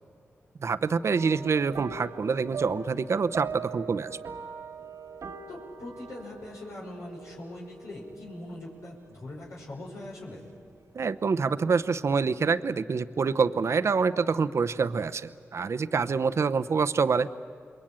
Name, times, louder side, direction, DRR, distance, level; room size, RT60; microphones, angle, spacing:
voice 1, 0.6-4.2 10.9-17.3, right 5 dB, 65° right, 12 dB, 0.8 m, -26 dB
sound 1, 1.2-10.7 11.0-11.4 11.8-11.9, right 6 dB, 80° right, 1.5 m, -43 dB
voice 2, 5.5-10.5, left 1 dB, 80° left, -4 dB, 5.7 m, -41 dB
28.0 x 22.0 x 8.9 m, 2.2 s
cardioid pair, 55°, 5 cm